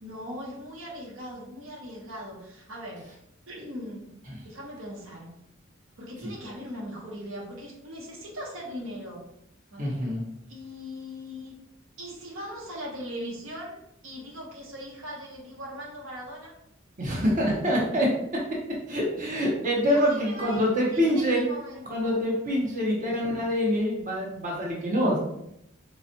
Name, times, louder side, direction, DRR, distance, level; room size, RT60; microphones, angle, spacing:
voice 1, 0.0-3.1 3.5-4.1 4.4-5.3 6.0-9.2 9.7-10.2 10.5-11.5 12.0-13.8 14.0-16.5 19.9-22.2, equal, 80° right, -2 dB, 1.0 m, -40 dB
voice 2, 9.8-10.2 17.0-18.1 18.9-21.5 21.9-25.2, equal, 40° right, -4 dB, 0.8 m, -25 dB
4.1 x 2.4 x 2.7 m, 0.79 s
head